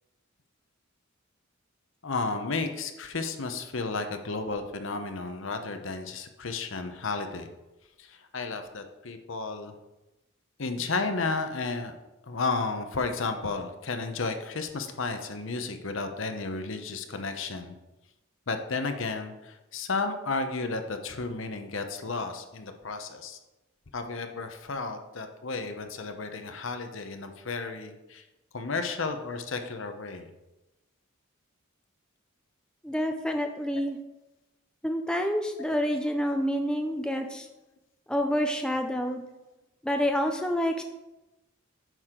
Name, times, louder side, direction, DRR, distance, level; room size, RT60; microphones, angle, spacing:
voice 1, 2.0-7.5 8.0-9.7 10.6-11.9 12.3-17.7 18.5-23.4 23.9-28.2 28.5-30.3 36.9-37.3, left 3 dB, 65° left, 7 dB, 0.9 m, -33 dB
voice 2, 32.8-34.0 34.8-37.5 38.1-39.3 39.8-40.8, equal, 5° left, 4 dB, 0.5 m, -28 dB
9.1 x 6.3 x 3.8 m, 0.99 s
head